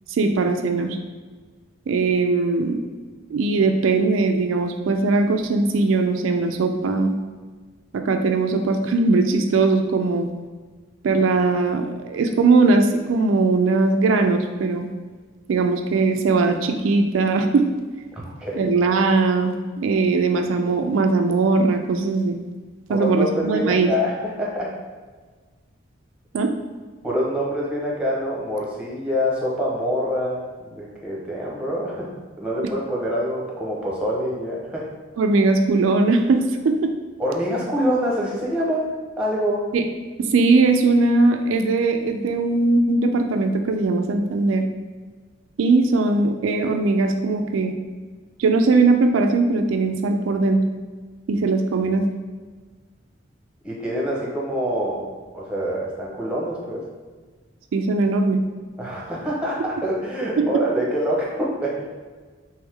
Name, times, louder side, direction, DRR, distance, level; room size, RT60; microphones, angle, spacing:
voice 1, 0.1-1.0 1.9-2.8 3.3-7.1 7.9-10.3 11.0-14.9 15.5-17.7 18.5-22.4 22.9-23.9 26.3-26.5 35.2-36.9 39.7-39.8 40.3-44.7 45.6-47.7 48.4-50.6 51.3-52.1 57.7-58.4 60.4-60.5, right 3 dB, 85° right, 5 dB, 0.4 m, -20 dB
voice 2, 18.1-18.6 22.9-24.7 27.0-32.1 32.4-34.9 37.2-38.9 39.2-39.6 53.6-56.8 58.8-61.9, equal, 5° right, -4 dB, 0.8 m, -25 dB
3.5 x 3.0 x 3.3 m, 1.4 s
head